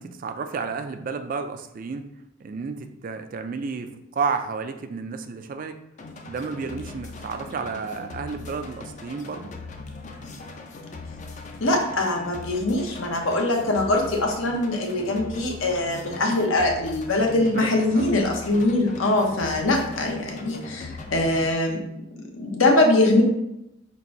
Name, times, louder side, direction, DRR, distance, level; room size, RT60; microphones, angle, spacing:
voice 1, 0.0-2.1 2.4-5.8 6.2-9.5 17.4-18.1, right 5 dB, 40° right, 8 dB, 0.3 m, -32 dB
sound 1, 6.0-21.5, left 3 dB, 35° left, 0.4 m, -40 dB
voice 2, 11.6-21.8 22.2-23.2, left 2 dB, 80° left, 1 dB, 0.9 m, -22 dB
4.0 x 2.6 x 4.7 m, 0.85 s
head